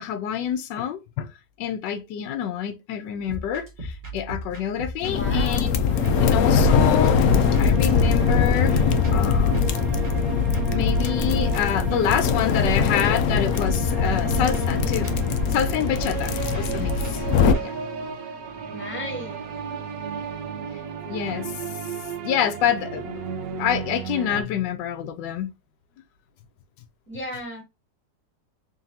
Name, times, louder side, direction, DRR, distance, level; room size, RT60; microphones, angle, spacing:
voice 1, 0.0-1.3 1.6-5.8 6.2-9.6 10.7-17.8 21.1-21.5 22.2-23.2 23.6-25.5, left 9 dB, 90° left, 1.3 m, -27 dB
sound 1, 3.2-17.6, equal, 30° right, 1.4 m, -37 dB
sound 2, 5.0-17.5, left 6 dB, 70° left, 0.9 m, -21 dB
voice 2, 5.1-5.8 18.7-19.5 27.1-27.6, left 1 dB, 5° left, 1.8 m, -35 dB
sound 3, 5.8-24.4, right 5 dB, 60° right, 1.2 m, -34 dB
3.9 x 3.7 x 2.7 m
omnidirectional pair, 1.9 m